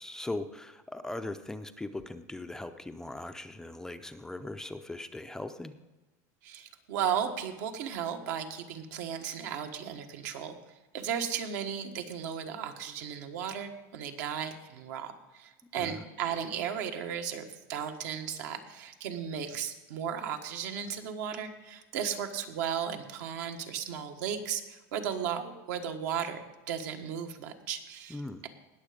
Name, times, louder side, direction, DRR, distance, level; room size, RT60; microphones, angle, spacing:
voice 1, 0.0-5.7 15.8-16.0 28.1-28.4, left 2 dB, 5° left, 8 dB, 0.4 m, -39 dB
voice 2, 6.4-10.6 10.9-28.2, right 8 dB, 70° right, 6 dB, 1.5 m, -35 dB
19.0 x 7.0 x 5.1 m, 1.2 s
supercardioid pair, 150°, 10 cm